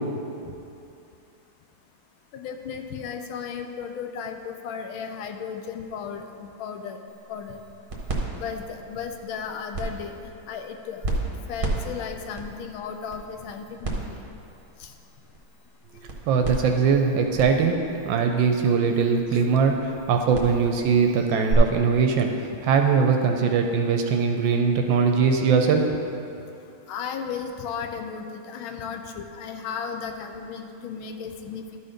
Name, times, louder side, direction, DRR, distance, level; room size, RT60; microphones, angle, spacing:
voice 1, 2.3-7.0 7.3-7.6 8.4-10.1 10.5-11.0 11.5-14.0 14.8-14.9 19.3-19.4 26.9-31.8, left 6 dB, 80° left, 5 dB, 1.3 m, -35 dB
sound 1, 7.1-21.5, right 2 dB, 35° right, 0.9 m, -35 dB
voice 2, 16.3-17.8 18.0-25.9, right 5 dB, 75° right, 4 dB, 1.2 m, -21 dB
12.0 x 4.2 x 5.0 m, 2.7 s
omnidirectional pair, 2.3 m